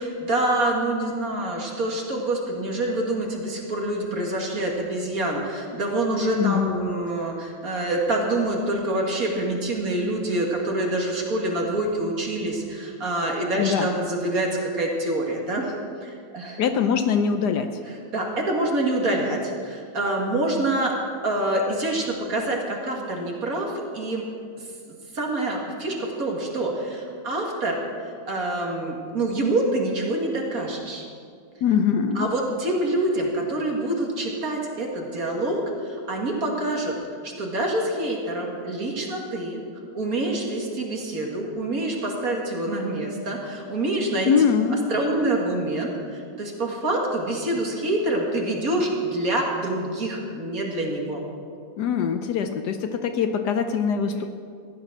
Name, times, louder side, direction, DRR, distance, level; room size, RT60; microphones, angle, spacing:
voice 1, 0.0-15.7 16.0-16.6 18.1-20.9 21.2-24.2 25.1-31.1 32.2-36.9 37.2-39.6 39.9-44.3 44.9-51.2, right 1 dB, 50° right, 0 dB, 2.4 m, -26 dB
voice 2, 6.3-6.8 13.6-13.9 16.6-17.7 31.6-32.3 44.3-44.8 51.8-54.3, left 7 dB, 70° left, 7 dB, 1.2 m, -22 dB
15.0 x 11.0 x 6.2 m, 2.2 s
omnidirectional pair, 2.0 m